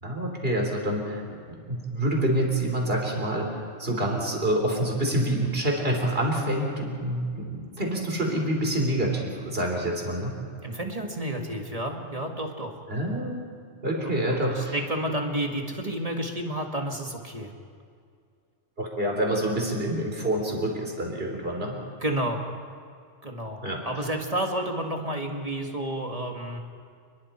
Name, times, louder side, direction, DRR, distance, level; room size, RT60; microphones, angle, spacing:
voice 1, 0.0-10.3 12.9-13.4 13.8-14.8 18.8-21.8 23.6-23.8, right 1 dB, 50° right, 1 dB, 3.9 m, -27 dB
voice 2, 10.6-12.7 14.0-17.5 22.0-22.4 23.2-26.6, right 1 dB, 30° right, 2 dB, 1.9 m, -31 dB
29.5 x 21.5 x 4.4 m, 2.2 s
omnidirectional pair, 1.3 m